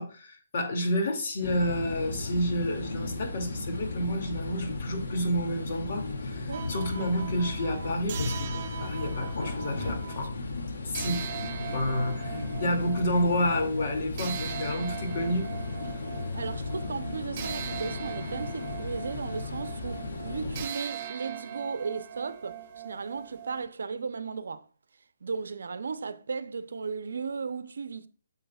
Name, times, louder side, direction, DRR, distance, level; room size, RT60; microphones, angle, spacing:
voice 1, 0.0-10.3 10.8-11.3 11.7-15.5, equal, 45° left, 2.4 m, -30 dB
Apartment kitchen ambience, 1.4-20.6, left 3 dB, 70° left, 2.3 m, -35 dB
sound 1, 6.5-10.2 10.9-23.6, right 9 dB, 30° right, 1.0 m, -41 dB
voice 2, 16.3-24.6 25.2-28.1, right 5 dB, 75° right, 0.7 m, -36 dB
9.7 x 7.1 x 2.4 m
hypercardioid pair, 160°, 0 cm